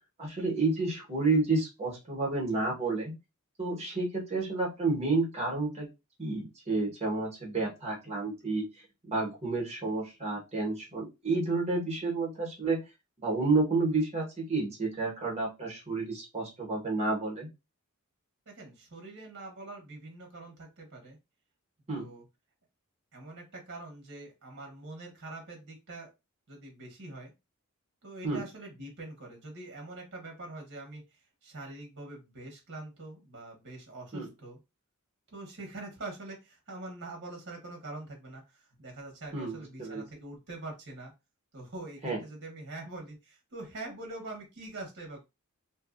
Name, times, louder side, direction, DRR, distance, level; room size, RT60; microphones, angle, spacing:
voice 1, 0.2-3.1 3.6-5.9 6.2-8.7 9.0-12.8 13.2-17.5 21.9-22.1 28.2-28.4 34.1-34.3 39.3-40.0 42.0-42.2, right 3 dB, 30° right, -2 dB, 1.2 m, -30 dB
voice 2, 18.5-21.2 21.9-22.2 23.1-26.1 26.5-27.3 28.0-31.0 31.4-34.6 35.3-41.1 41.5-45.2, right 2 dB, 50° right, 1 dB, 1.0 m, -44 dB
2.7 x 2.5 x 2.5 m, 0.25 s
head